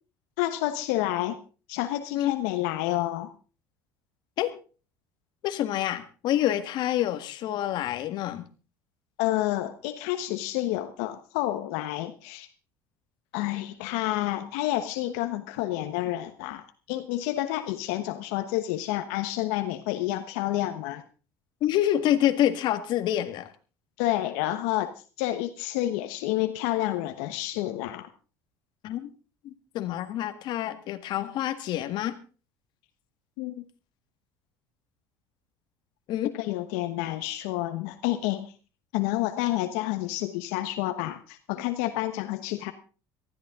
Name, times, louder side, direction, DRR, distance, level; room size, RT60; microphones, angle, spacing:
voice 1, 0.4-1.4 1.7-3.3 9.2-12.5 13.3-16.6 16.9-21.0 24.0-24.9 25.2-28.1 33.4-33.6 36.3-38.5 38.9-42.7, left 15 dB, 85° left, 9 dB, 1.2 m, -29 dB
voice 2, 5.4-8.5 21.6-23.5 28.8-29.1 29.4-32.2 36.1-36.3, left 12 dB, 55° left, 9 dB, 1.8 m, -27 dB
19.0 x 13.5 x 3.8 m, 0.35 s
cardioid pair, 125°, 9 cm